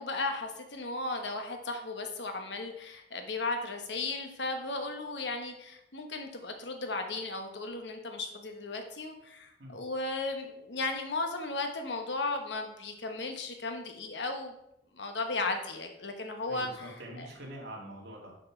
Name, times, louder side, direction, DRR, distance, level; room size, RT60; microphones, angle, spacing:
voice 1, 0.0-14.6 14.9-17.3, left 3 dB, 80° left, 5 dB, 1.1 m, -35 dB
voice 2, 16.5-18.3, equal, 70° right, -2 dB, 2.2 m, -44 dB
6.3 x 6.1 x 4.5 m, 0.79 s
head